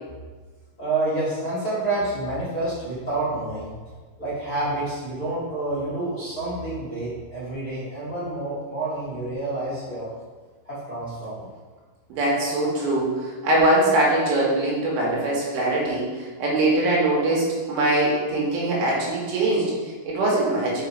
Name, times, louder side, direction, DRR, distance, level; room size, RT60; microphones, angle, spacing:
voice 1, 0.8-3.7 4.2-10.1 10.6-11.5, right 2 dB, 30° left, -10 dB, 1.8 m, -28 dB
voice 2, 12.1-20.8, right 1 dB, 80° right, -4 dB, 4.2 m, -22 dB
6.9 x 5.6 x 4.9 m, 1.4 s
omnidirectional pair, 5.6 m